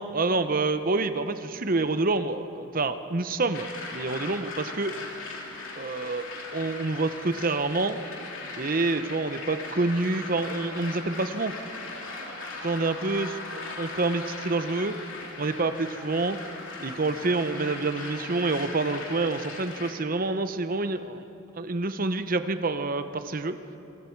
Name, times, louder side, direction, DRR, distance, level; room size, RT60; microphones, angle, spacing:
voice 1, 0.0-4.9 5.8-6.2 6.5-8.0 8.6-11.5 12.6-13.3 13.8-15.0 15.4-16.4 16.8-21.2 21.5-23.6, right 3 dB, 45° right, 10 dB, 0.8 m, -27 dB
sound 1, 3.5-19.9, left 3 dB, 75° left, 3.1 m, -39 dB
27.0 x 22.0 x 4.6 m, 2.9 s
head